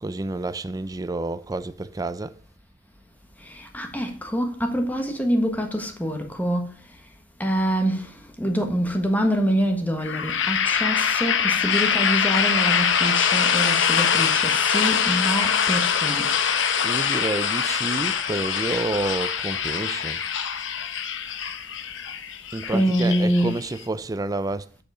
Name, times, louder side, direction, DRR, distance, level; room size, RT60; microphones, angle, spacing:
voice 1, 0.0-2.4 16.8-20.2 22.5-24.7, right 2 dB, 20° right, 0.4 m, -29 dB
voice 2, 3.4-6.7 7.4-16.3 22.7-23.5, equal, 10° left, 1.4 m, -25 dB
sound 1, 10.0-23.8, left 7 dB, 85° left, 1.0 m, -23 dB
7.8 x 6.9 x 4.8 m
head